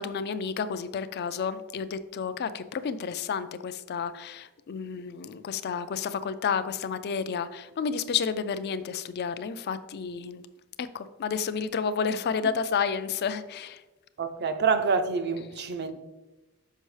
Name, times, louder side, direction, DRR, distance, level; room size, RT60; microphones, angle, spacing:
voice 1, 0.0-10.4 10.8-13.8, left 6 dB, 50° left, 0.4 m, -31 dB
voice 2, 14.2-16.0, right 5 dB, 50° right, 0.5 m, -27 dB
6.6 x 5.3 x 3.2 m
head